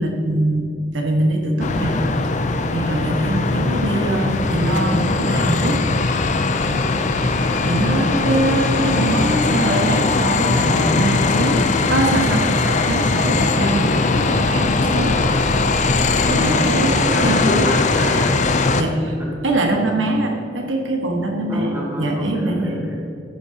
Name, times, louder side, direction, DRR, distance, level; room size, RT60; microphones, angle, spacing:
voice 1, 0.0-2.0 2.7-5.8 7.2-7.3 7.6-11.6 11.9-15.2 16.3-17.6 18.8-19.1 19.4-22.8, right 1 dB, 90° right, 1 dB, 1.5 m, -22 dB
sound 1, 1.6-18.8, left 3 dB, 40° left, 0.5 m, -19 dB
voice 2, 16.2-16.7 17.0-18.3 21.5-23.0, equal, 10° right, -4 dB, 2.0 m, -27 dB
14.0 x 9.8 x 2.9 m, 2.5 s
head